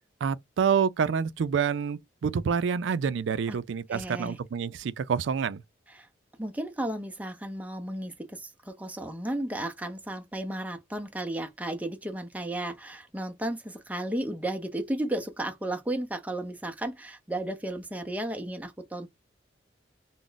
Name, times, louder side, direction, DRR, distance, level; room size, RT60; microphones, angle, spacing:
voice 1, 0.2-5.6, right 6 dB, 90° right, 0.4 m, -27 dB
voice 2, 3.9-4.4 5.9-6.1 6.4-19.1, right 1 dB, 10° right, 0.4 m, -34 dB
2.4 x 2.0 x 3.7 m
head